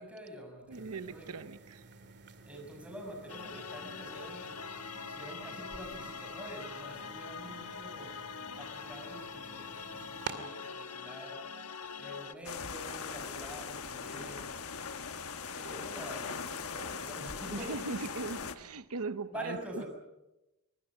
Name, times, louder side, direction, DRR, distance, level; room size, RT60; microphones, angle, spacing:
voice 1, 0.0-1.4 2.2-4.5 5.0-8.2 8.6-11.4 12.0-14.6 15.5-18.1 19.3-19.9, right 1 dB, 5° right, 2 dB, 6.4 m, -46 dB
sound 1, 0.7-10.3, right 5 dB, 50° right, 2.2 m, -50 dB
voice 2, 0.7-1.9 17.5-19.8, right 3 dB, 75° right, 12 dB, 0.8 m, -39 dB
sound 2, 3.3-12.3, left 5 dB, 90° left, 1.3 m, -43 dB
sound 3, 12.4-18.5, left 5 dB, 70° left, 1.3 m, -40 dB
25.0 x 22.5 x 6.2 m, 0.97 s
head